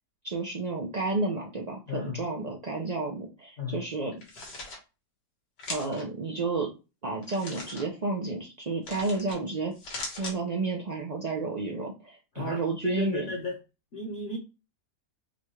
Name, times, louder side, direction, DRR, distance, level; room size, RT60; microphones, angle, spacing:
voice 1, 0.2-4.2 5.7-6.7 7.0-9.7 10.2-13.3, right 3 dB, 75° right, 0.3 m, -31 dB
voice 2, 1.9-2.3 3.6-3.8 12.4-13.6 13.9-14.4, left 4 dB, 50° left, 1.1 m, -35 dB
sound 1, 4.1-4.8 5.6-6.0 7.2-7.8 8.8-9.4 9.7-10.4, left 2 dB, 85° left, 1.9 m, -39 dB
6.0 x 2.4 x 3.1 m
omnidirectional pair, 1.8 m